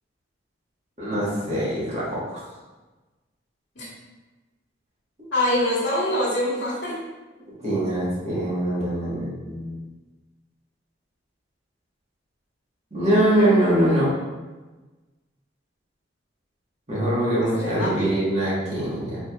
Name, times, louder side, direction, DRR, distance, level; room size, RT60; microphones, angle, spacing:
voice 1, 1.0-2.4 7.6-9.8 12.9-14.1 16.9-19.2, right 1 dB, 35° right, -8 dB, 1.4 m, -23 dB
voice 2, 5.3-7.0 17.6-18.1, left 1 dB, 70° left, -12 dB, 1.5 m, -24 dB
4.6 x 3.6 x 2.4 m, 1.2 s
head